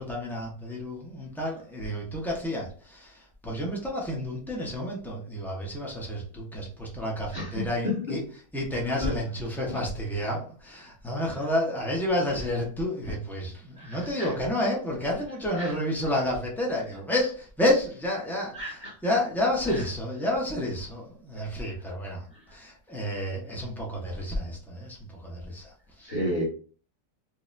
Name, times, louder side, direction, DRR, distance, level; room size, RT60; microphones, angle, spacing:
voice 1, 0.0-8.2 8.5-26.1, left 1 dB, ahead, -3 dB, 0.4 m, -30 dB
voice 2, 7.3-8.1 9.0-9.1 9.6-9.8 13.8-14.3 15.6-15.7 18.5-18.9 19.7-19.8 26.0-26.4, left 1 dB, 30° left, -5 dB, 1.2 m, -32 dB
4.7 x 2.2 x 2.6 m, 0.42 s
omnidirectional pair, 1.9 m